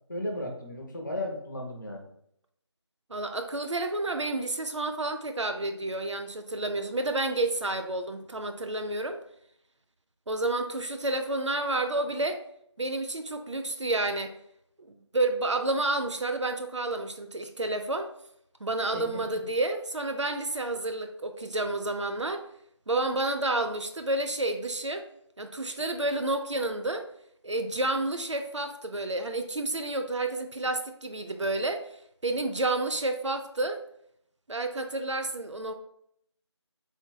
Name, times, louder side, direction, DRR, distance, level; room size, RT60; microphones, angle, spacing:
voice 1, 0.1-2.1 18.9-19.2, left 1 dB, 40° left, 1 dB, 0.7 m, -35 dB
voice 2, 3.1-9.2 10.3-12.4 12.8-14.3 15.1-18.1 18.6-22.5 22.9-25.1 25.4-27.1 27.4-31.8 32.2-33.8 34.5-35.7, right 2 dB, 85° right, 7 dB, 0.5 m, -30 dB
3.5 x 2.8 x 2.2 m, 0.71 s
figure-of-eight pair, 170°, 15 cm